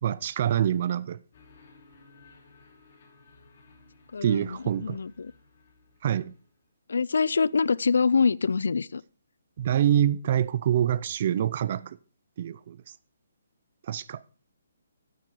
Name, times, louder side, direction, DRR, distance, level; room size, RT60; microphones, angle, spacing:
voice 1, 0.0-1.2 4.2-5.0 6.0-6.3 9.6-12.0 12.4-12.8 13.9-14.2, right 10 dB, 40° right, 0.4 m, -25 dB
sound 1, 1.3-6.7, left 3 dB, 40° left, 3.1 m, -57 dB
voice 2, 4.1-5.3 6.9-9.0, left 5 dB, 75° left, 0.4 m, -25 dB
9.2 x 8.3 x 4.9 m
hypercardioid pair, 170°, 0 cm